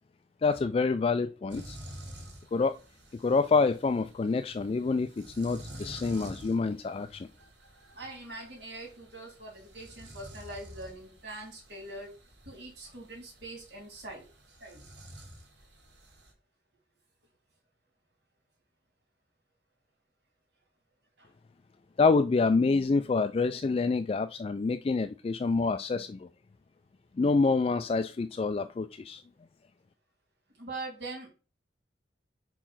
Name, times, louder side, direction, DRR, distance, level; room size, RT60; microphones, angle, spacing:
voice 1, 0.4-1.8 2.5-2.8 3.2-7.3 22.0-26.3 27.2-29.2, left 4 dB, 35° left, 0.3 m, -27 dB
sound 1, 1.5-16.3, right 1 dB, 85° right, 1.9 m, -50 dB
voice 2, 7.9-12.1 12.4-14.2 14.6-14.8 21.2-21.3 30.6-31.3, right 2 dB, 70° right, 2.9 m, -43 dB
5.0 x 4.6 x 5.7 m
head